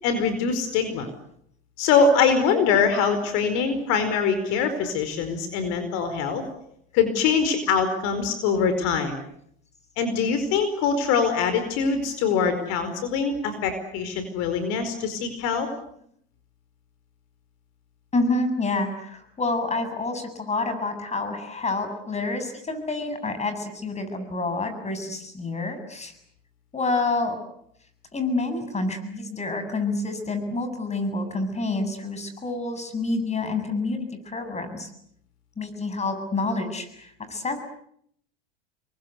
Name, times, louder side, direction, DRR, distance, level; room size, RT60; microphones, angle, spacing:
voice 1, 0.0-1.1 1.8-6.4 6.9-9.2 10.0-15.7, left 5 dB, 60° left, 10 dB, 4.8 m, -23 dB
voice 2, 18.1-26.1 26.7-27.4 28.1-34.9 35.6-37.6, left 3 dB, 20° left, 9 dB, 7.7 m, -28 dB
30.0 x 23.0 x 8.2 m, 0.70 s
hypercardioid pair, 90°, 29 cm